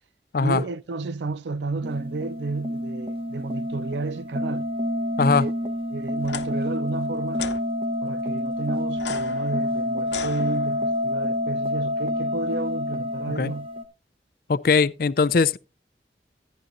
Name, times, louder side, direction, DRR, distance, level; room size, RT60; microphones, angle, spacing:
voice 1, 0.4-4.7 5.2-5.5 5.9-7.5 8.0-13.7, right 3 dB, 85° right, 0.5 m, -32 dB
sound 1, 1.8-13.8, left 1 dB, 30° right, 1.0 m, -28 dB
sound 2, 6.2-6.5 7.3-7.6 8.9-11.0, left 6 dB, 90° left, 1.0 m, -36 dB
voice 2, 14.5-15.6, left 4 dB, 55° left, 0.4 m, -20 dB
14.5 x 10.0 x 2.6 m
head